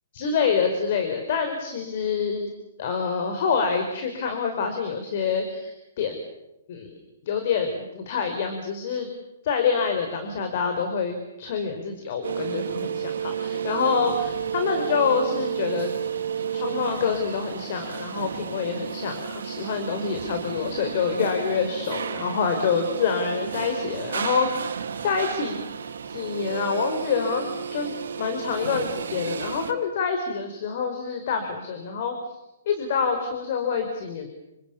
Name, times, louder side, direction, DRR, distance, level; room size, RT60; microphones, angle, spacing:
voice 1, 0.1-2.5 2.8-6.2 6.7-7.0 7.2-9.1 9.4-15.9 16.5-24.7 25.0-25.6 26.1-32.4 32.7-34.3, left 5 dB, 50° left, 6 dB, 4.9 m, -26 dB
sound 1, 12.2-29.7, right 7 dB, 70° right, 3.2 m, -32 dB
29.0 x 25.5 x 7.3 m, 0.93 s
hypercardioid pair, 135°, 0 cm